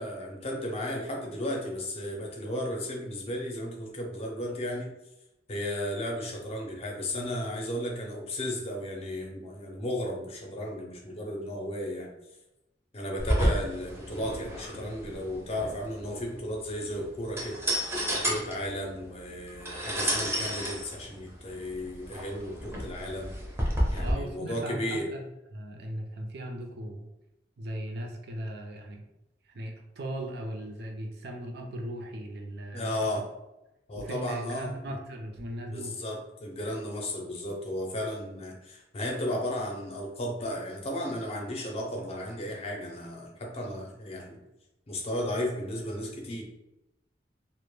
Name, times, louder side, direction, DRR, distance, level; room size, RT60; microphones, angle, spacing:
voice 1, 0.0-4.9 5.5-12.1 12.9-17.6 18.1-23.3 23.9-25.1 32.7-33.3 33.9-34.7 35.7-44.4 44.9-46.4, left 1 dB, 35° left, 0 dB, 0.5 m, -34 dB
sound 1, 13.2-24.1, equal, 15° right, 0.5 m, -31 dB
voice 2, 24.0-25.2 25.5-27.1 27.6-29.0 29.5-32.9 34.0-36.0, right 1 dB, 65° right, 2 dB, 0.4 m, -38 dB
2.2 x 2.0 x 3.0 m, 0.92 s
head